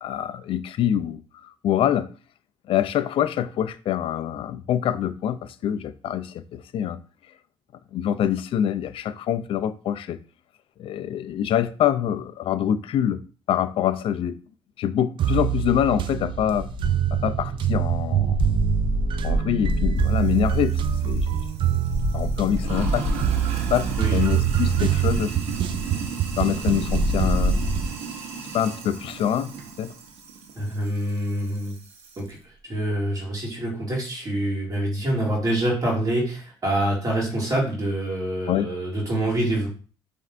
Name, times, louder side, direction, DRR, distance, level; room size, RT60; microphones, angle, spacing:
voice 1, 0.0-2.1 2.7-7.0 7.9-10.2 10.8-13.2 13.5-14.4 14.8-16.7 17.1-18.4 19.2-21.4 22.1-23.1 23.7-25.3 26.4-27.6 28.5-29.9 38.5-38.7, left 10 dB, 60° left, 0.4 m, -25 dB
sound 1, 15.2-28.0, right 11 dB, 50° right, 0.4 m, -26 dB
sound 2, 15.5-16.0 16.3-27.9, equal, 35° left, 1.7 m, -28 dB
Sink (filling or washing), 20.0-32.3, right 5 dB, 80° right, 0.9 m, -37 dB
voice 2, 30.6-31.7 32.2-32.4 32.6-39.7, right 1 dB, 35° right, 2.1 m, -26 dB
5.4 x 3.3 x 2.5 m
cardioid pair, 95°, 11 cm